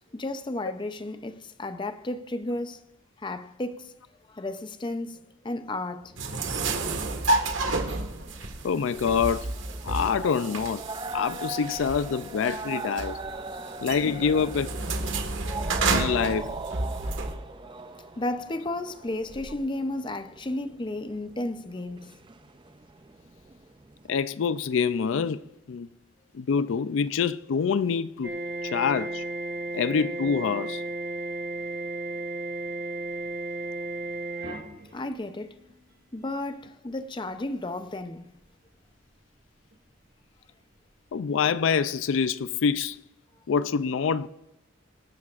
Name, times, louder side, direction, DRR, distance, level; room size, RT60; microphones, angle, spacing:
voice 1, 0.1-2.9 3.2-3.9 4.3-6.1 13.6-13.8 17.3-22.1 34.9-35.6 36.1-38.3, left 2 dB, 25° left, 0.6 m, -33 dB
sound 1, 6.0-24.2, right 3 dB, 25° right, 0.5 m, -41 dB
sound 2, 6.2-17.3, right 3 dB, 70° right, 1.6 m, -30 dB
voice 2, 8.6-9.6 9.8-10.9 11.1-13.2 13.8-14.8 15.9-16.6 24.1-25.4 25.7-25.9 26.3-29.2 29.7-30.8 41.1-43.0 43.5-44.3, left 6 dB, 75° left, 0.4 m, -26 dB
sound 3, 28.2-35.6 36.6-36.9 37.3-37.7 39.7-39.8, right 2 dB, 50° right, 2.1 m, -34 dB
26.0 x 12.0 x 2.5 m
head